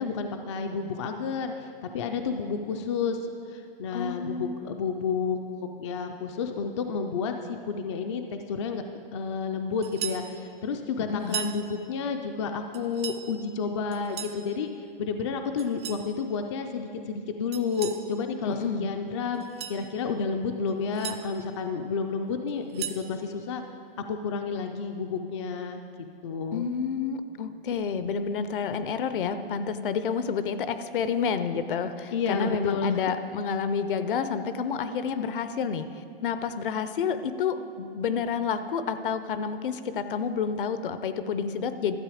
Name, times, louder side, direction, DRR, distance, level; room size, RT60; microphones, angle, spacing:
voice 1, 0.0-8.8 9.1-14.7 15.0-19.4 19.7-23.6 24.1-25.8 26.2-26.7 32.1-33.0 35.1-35.2, left 5 dB, 30° left, 5 dB, 0.4 m, -31 dB
voice 2, 3.9-4.6 11.1-11.4 18.5-18.9 26.5-42.0, left 6 dB, 60° left, 11 dB, 0.7 m, -29 dB
sound 1, 9.8-10.3 11.2-11.6 12.7-13.2 13.9-14.4 15.6-16.1 17.5-18.0 19.3-19.8 20.7-21.2 22.5-23.1, right 11 dB, 30° right, 0.4 m, -36 dB
12.5 x 7.6 x 4.9 m, 2.4 s
hypercardioid pair, 160°, 29 cm